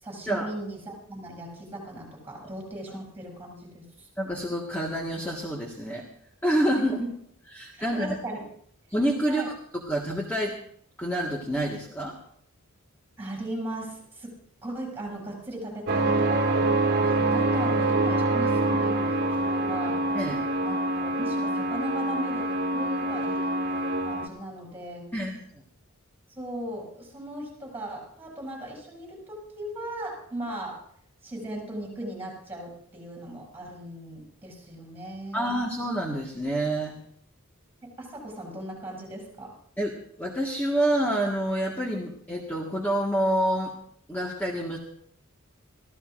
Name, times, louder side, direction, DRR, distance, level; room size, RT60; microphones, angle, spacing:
voice 1, 0.0-4.1 6.8-7.1 7.7-8.4 9.3-9.5 13.2-16.6 17.0-20.1 20.6-25.1 26.3-30.9 31.2-35.6 37.8-39.5, right 1 dB, 10° right, 0 dB, 7.9 m, -38 dB
voice 2, 4.2-6.0 6.4-7.0 7.5-8.1 8.9-9.4 9.7-10.6 11.0-12.2 20.1-20.4 25.1-25.4 35.3-37.0 39.8-39.9 40.2-43.7 44.1-44.8, right 1 dB, 10° left, -2 dB, 1.6 m, -27 dB
sound 1, 15.9-24.3, right 2 dB, 50° right, 1.6 m, -25 dB
25.5 x 15.5 x 2.6 m, 0.64 s
head